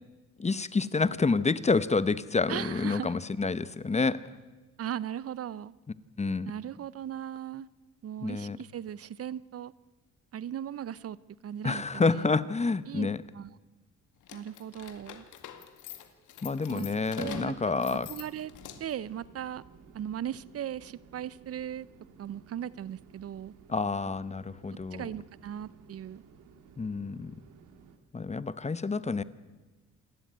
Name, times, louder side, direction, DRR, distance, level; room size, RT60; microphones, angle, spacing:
voice 1, 0.4-4.2 6.2-6.5 8.2-8.6 11.6-13.2 16.4-18.1 23.7-25.1 26.8-27.3 28.1-29.2, left 4 dB, 20° left, 15 dB, 0.9 m, -28 dB
voice 2, 2.5-3.2 4.8-5.7 6.4-7.7 8.0-9.7 10.3-11.2 11.4-12.3 12.9-13.1 13.3-13.5 14.3-15.2 16.7-16.9 17.1-17.6 17.8-18.5 18.8-19.6 19.9-21.9 22.2-23.5 24.9-26.2, right 10 dB, 50° right, 19 dB, 0.6 m, -38 dB
sound 1, 14.2-19.1, left 10 dB, 80° left, 2.0 m, -46 dB
sound 2, 17.3-28.0, right 5 dB, 85° right, 2.4 m, -56 dB
28.0 x 12.0 x 9.3 m, 1.2 s
cardioid pair, 90°, 30 cm